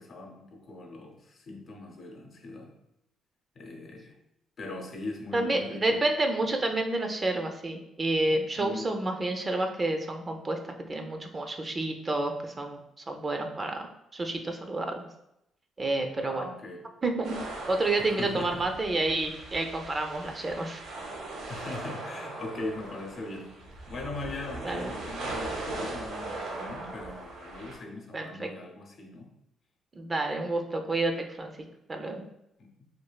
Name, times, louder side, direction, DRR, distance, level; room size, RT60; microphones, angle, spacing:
voice 1, 0.0-2.7 3.6-4.2 4.6-6.0 8.6-8.9 16.2-16.9 18.0-18.6 21.5-23.5 23.9-29.4 32.6-32.9, left 2 dB, 55° left, 1 dB, 0.6 m, -40 dB
voice 2, 5.3-12.8 13.1-13.9 14.1-15.1 15.8-16.5 17.0-17.4 17.7-20.8 24.6-24.9 28.1-28.5 29.9-31.5 31.9-32.2, right 2 dB, 30° right, 4 dB, 0.4 m, -29 dB
sound 1, 17.2-27.8, right 2 dB, 85° right, 0.6 m, -39 dB
3.1 x 2.3 x 2.2 m, 0.82 s
cardioid pair, 90°, 0 cm